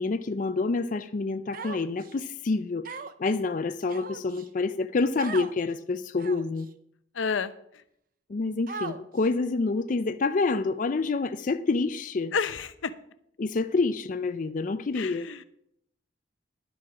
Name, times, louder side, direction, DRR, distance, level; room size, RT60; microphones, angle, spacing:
voice 1, 0.0-2.9 3.2-6.7 8.3-12.3 13.4-15.3, left 3 dB, 40° left, 0.4 m, -27 dB
Human voice, 1.5-2.1 2.8-3.3 3.9-4.5 5.2-5.5 6.2-6.6 7.3-7.4 8.7-9.3, right 4 dB, 45° right, 0.6 m, -38 dB
voice 2, 7.1-7.8 12.3-12.9 14.9-15.4, left 5 dB, 85° left, 0.7 m, -30 dB
10.5 x 7.6 x 6.0 m
head